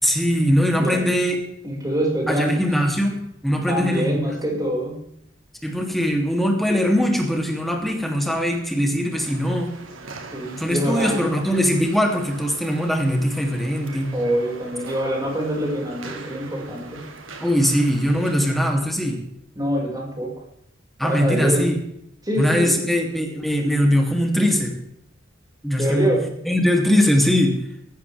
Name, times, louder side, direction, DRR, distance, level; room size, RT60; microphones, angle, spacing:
voice 1, 0.0-1.4 2.3-3.1 3.4-4.2 5.6-9.7 10.6-14.1 17.4-19.2 21.0-21.8 22.4-24.8 25.6-26.1 26.4-27.6, equal, ahead, 1 dB, 3.0 m, -21 dB
voice 2, 0.7-1.2 1.6-2.7 3.7-5.1 10.3-11.2 14.1-17.1 19.6-20.4 21.0-21.7 22.2-22.8 25.8-26.3, equal, 20° right, -2 dB, 5.8 m, -25 dB
sound 1, 9.1-18.6, right 3 dB, 90° right, 2.3 m, -40 dB
18.5 x 15.0 x 3.6 m, 0.75 s
head